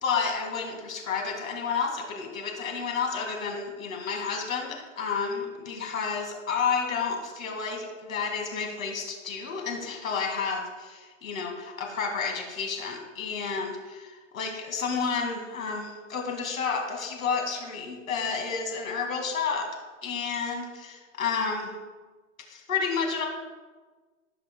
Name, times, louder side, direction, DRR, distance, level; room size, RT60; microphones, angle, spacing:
voice 1, 0.0-19.7 20.0-21.7 22.5-23.3, left 5 dB, 85° left, 2 dB, 2.2 m, -31 dB
16.5 x 6.1 x 2.2 m, 1.3 s
hypercardioid pair, 145°, 39 cm